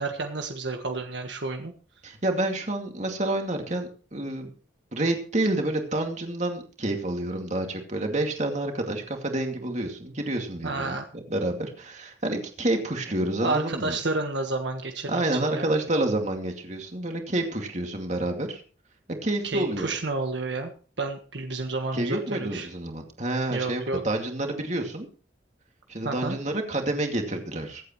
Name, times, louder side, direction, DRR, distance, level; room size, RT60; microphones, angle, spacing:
voice 1, 0.0-1.7 10.6-11.1 13.2-15.7 19.4-20.7 21.0-22.7 23.5-24.0 26.0-26.4, right 3 dB, 70° right, 4 dB, 1.5 m, -30 dB
voice 2, 2.0-4.5 4.9-14.0 15.1-18.6 19.1-19.9 21.9-25.1 25.9-27.8, right 1 dB, 40° right, 3 dB, 2.4 m, -28 dB
24.0 x 8.5 x 3.1 m, 0.39 s
head